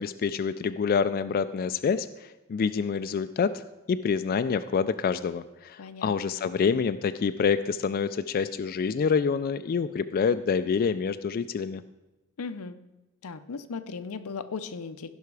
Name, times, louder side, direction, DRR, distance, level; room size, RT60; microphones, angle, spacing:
voice 1, 0.0-3.6 3.9-11.8, left 6 dB, 40° left, 11 dB, 0.3 m, -27 dB
voice 2, 5.8-6.1 12.4-12.8 13.2-15.1, left 5 dB, 90° left, 11 dB, 0.6 m, -37 dB
16.0 x 5.7 x 4.8 m, 1.0 s
head